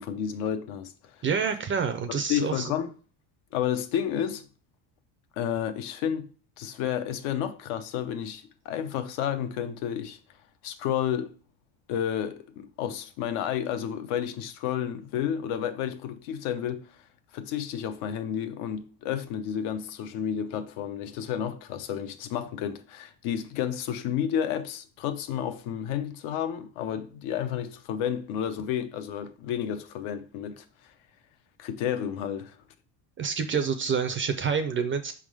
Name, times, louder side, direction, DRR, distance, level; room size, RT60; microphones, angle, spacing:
voice 1, 0.0-1.2 2.1-2.9 3.5-4.5 5.4-6.3 6.6-10.2 10.6-11.3 11.9-16.9 17.3-30.6 31.6-32.5, left 9 dB, 80° left, 0.9 m, -31 dB
voice 2, 1.2-2.7 33.2-35.1, right 6 dB, 25° right, 0.4 m, -27 dB
5.4 x 3.7 x 4.8 m
cardioid pair, 145°, 49 cm